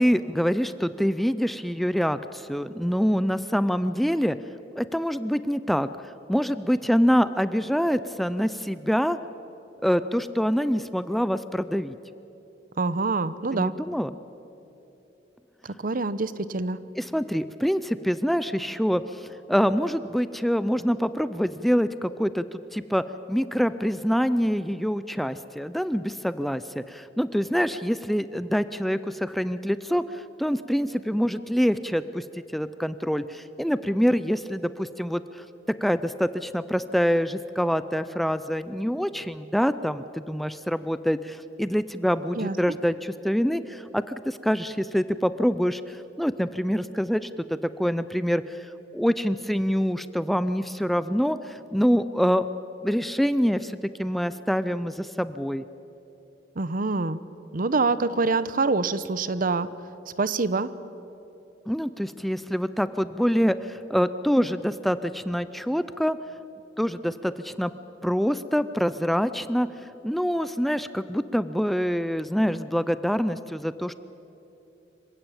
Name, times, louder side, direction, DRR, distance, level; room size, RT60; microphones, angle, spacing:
voice 1, 0.0-4.4 4.8-9.2 9.8-12.0 13.5-14.1 17.0-23.0 23.3-32.2 32.5-35.4 35.8-47.3 47.8-52.4 52.8-55.6 61.7-66.2 66.8-67.7 68.0-73.9, equal, ahead, 13 dB, 0.4 m, -25 dB
voice 2, 12.8-13.7 15.6-16.8 42.4-42.6 56.6-57.2 57.5-59.7 60.2-60.7, right 3 dB, 50° right, 15 dB, 0.8 m, -25 dB
26.0 x 16.0 x 8.8 m, 3.0 s
head